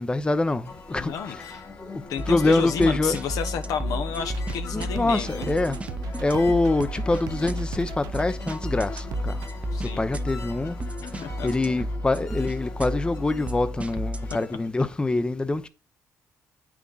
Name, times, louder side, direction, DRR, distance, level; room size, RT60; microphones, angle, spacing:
voice 1, 0.0-1.4 1.9-2.0 2.3-3.2 4.7-5.8 6.2-9.4 9.8-10.8 11.4-15.7, left 2 dB, 15° left, 0.7 m, -25 dB
sound 1, 0.6-14.7, left 4 dB, 55° left, 1.8 m, -42 dB
voice 2, 1.0-1.7 2.1-5.5 9.7-10.0 11.0-11.5, left 7 dB, 75° left, 1.0 m, -31 dB
sound 2, 2.2-14.4, equal, 20° right, 0.7 m, -32 dB
sound 3, 4.2-9.5, right 10 dB, 85° right, 0.5 m, -39 dB
8.2 x 6.0 x 3.9 m
cardioid pair, 90°, 6 cm